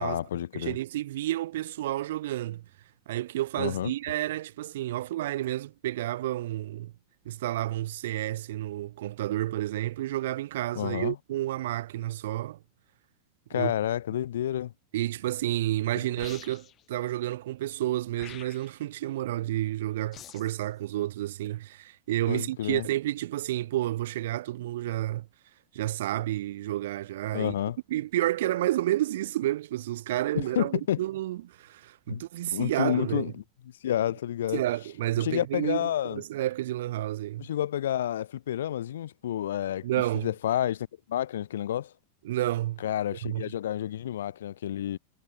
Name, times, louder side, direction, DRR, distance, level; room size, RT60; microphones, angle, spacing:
voice 1, 0.0-0.8 3.6-3.9 10.7-11.2 13.5-14.7 15.9-16.1 22.3-22.9 27.3-27.8 30.3-31.0 32.1-32.2 32.5-33.3 33.8-34.6 35.2-36.2 37.4-39.9 40.2-41.9 42.8-45.0, left 11 dB, 60° left, 0.9 m, -30 dB
voice 2, 0.5-2.6 3.1-6.9 7.2-12.6 13.5-13.7 14.9-25.3 25.7-27.5 27.9-33.3 34.5-37.5 39.8-40.3 42.2-42.8 43.2-43.5, right 14 dB, 55° right, 1.2 m, -30 dB
sound 1, 16.2-16.8 18.1-18.8 20.1-20.6, left 11 dB, 30° left, 3.9 m, -47 dB
figure-of-eight pair, 90°, 0 cm